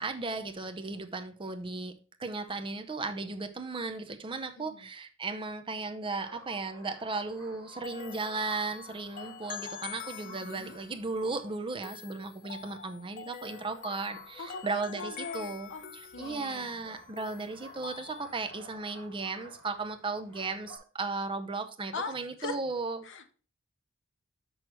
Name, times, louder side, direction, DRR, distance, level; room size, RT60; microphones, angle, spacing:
voice 1, 0.0-1.9 2.2-15.7 16.2-23.3, right 3 dB, 25° right, 0.6 m, -36 dB
voice 2, 4.6-4.9 10.2-10.8 14.4-16.7 21.9-22.6 23.0-23.3, left 4 dB, 60° left, 0.9 m, -41 dB
sound 1, 6.2-20.8, left 1 dB, 15° left, 3.6 m, -54 dB
sound 2, 7.8-18.5, left 8 dB, 40° left, 0.4 m, -46 dB
6.4 x 6.3 x 4.4 m
head